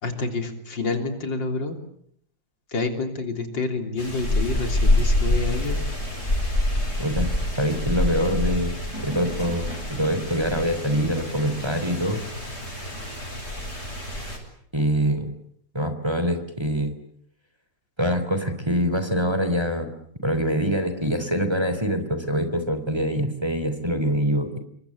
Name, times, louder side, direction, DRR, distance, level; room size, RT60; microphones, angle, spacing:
voice 1, 0.0-1.8 2.7-5.8, left 3 dB, 75° left, 6 dB, 4.1 m, -28 dB
sound 1, 4.0-14.4, left 1 dB, 35° left, 7.9 m, -26 dB
voice 2, 7.0-7.3 7.6-12.2 14.7-15.3 15.7-16.9 18.0-19.9 20.2-24.6, equal, 15° right, 9 dB, 3.6 m, -24 dB
28.5 x 23.5 x 8.6 m, 0.69 s
omnidirectional pair, 2.0 m